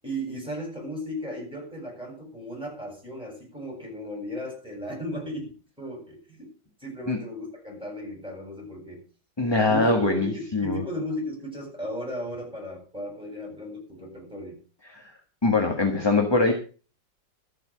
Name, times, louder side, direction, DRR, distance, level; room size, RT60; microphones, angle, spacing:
voice 1, 0.0-6.5 6.8-9.0 9.7-14.6, equal, 5° right, -1 dB, 7.8 m, -35 dB
voice 2, 9.4-10.8 14.9-15.0 15.4-16.5, left 3 dB, 15° left, 3 dB, 1.6 m, -23 dB
13.5 x 8.1 x 6.4 m, 0.37 s
omnidirectional pair, 2.0 m